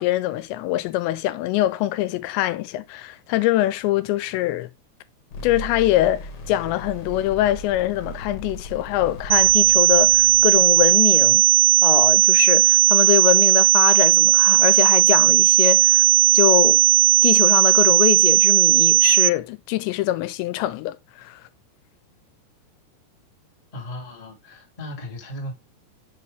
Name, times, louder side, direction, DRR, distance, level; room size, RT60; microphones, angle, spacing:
voice 1, 0.0-4.7 5.4-11.4 11.8-16.1 16.3-16.8 17.2-21.4, left 15 dB, 90° left, 2.9 m, -23 dB
sound 1, 5.3-11.0, equal, 55° left, 2.4 m, -37 dB
sound 2, 9.3-19.3, right 17 dB, 85° right, 2.6 m, -16 dB
voice 2, 23.7-25.5, left 1 dB, 25° left, 0.7 m, -36 dB
6.7 x 5.6 x 3.3 m
omnidirectional pair, 5.1 m